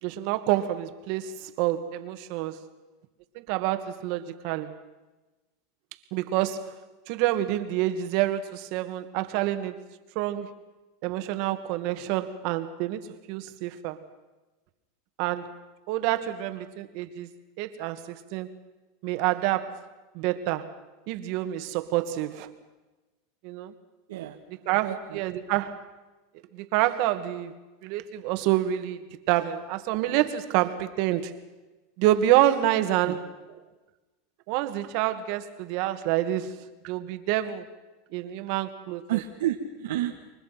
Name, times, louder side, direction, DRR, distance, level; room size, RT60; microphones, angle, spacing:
voice 1, 0.0-2.6 3.4-4.7 6.1-6.8 7.1-9.8 10.2-10.5 11.0-14.0 15.2-15.5 15.9-17.3 17.6-18.5 19.0-19.8 20.1-20.7 21.1-22.5 23.4-23.7 24.7-25.8 26.5-27.5 27.8-29.0 29.3-31.3 32.0-33.2 34.5-36.6 36.8-37.6 38.1-39.0, right 13 dB, 60° right, 9 dB, 2.1 m, -27 dB
voice 2, 24.1-25.4 33.0-33.2 39.1-40.3, right 12 dB, 80° right, 2 dB, 1.7 m, -31 dB
29.0 x 24.0 x 6.0 m, 1.1 s
supercardioid pair, 125°, 0 cm